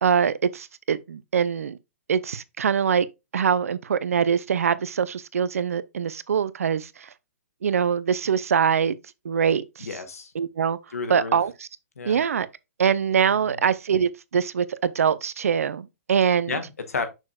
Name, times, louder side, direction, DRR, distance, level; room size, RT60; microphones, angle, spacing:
voice 1, 0.0-1.8 2.1-3.1 3.3-7.1 7.6-9.0 9.2-9.9 10.3-10.8 11.1-11.5 12.1-12.5 12.8-16.6, right 7 dB, 70° right, 0.6 m, -23 dB
voice 2, 9.8-10.3 10.9-11.4 12.0-12.2 13.5-13.6 16.5-17.1, left 4 dB, 75° left, 1.5 m, -31 dB
6.6 x 6.3 x 2.3 m
figure-of-eight pair, 120°, 8 cm